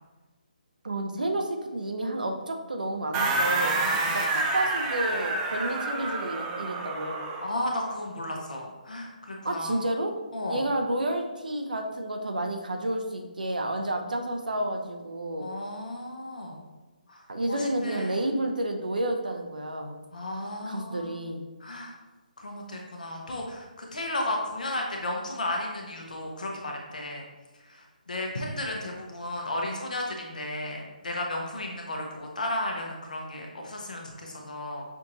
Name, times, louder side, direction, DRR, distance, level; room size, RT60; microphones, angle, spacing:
voice 1, 0.8-3.8 4.1-7.2 9.4-10.1 10.5-15.5 17.3-20.0 20.7-21.4, right 1 dB, 70° right, 4 dB, 0.6 m, -30 dB
sound 1, 3.1-7.5, right 2 dB, 20° right, 0.3 m, -28 dB
voice 2, 3.7-4.2 7.4-9.8 10.3-10.7 15.4-16.6 17.1-17.2 17.5-18.1 20.1-21.2 21.6-21.9 22.4-27.2 27.7-34.8, left 1 dB, 65° left, 1 dB, 0.9 m, -34 dB
5.8 x 2.5 x 2.9 m, 1.2 s
figure-of-eight pair, 145°, 5 cm